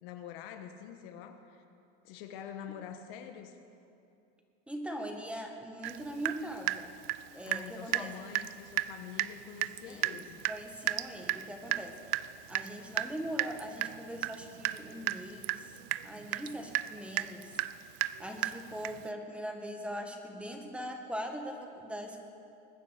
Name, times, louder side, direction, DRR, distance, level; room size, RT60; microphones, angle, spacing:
voice 1, 0.0-1.6 2.0-3.6 7.5-10.4, left 9 dB, 75° left, 7 dB, 1.4 m, -46 dB
voice 2, 4.7-6.9 7.3-8.4 9.9-10.2 10.5-12.0 12.5-15.6 16.0-17.5 18.2-22.2, equal, 5° right, 3 dB, 1.8 m, -41 dB
Water tap faucet / Drip, 5.8-6.0 6.2-7.7 7.9-8.1 8.3-8.5 8.8-8.9 9.2-9.3 9.6-19.1, right 17 dB, 80° right, 0.5 m, -33 dB
21.5 x 9.9 x 6.6 m, 2.6 s
supercardioid pair, 115°, 29 cm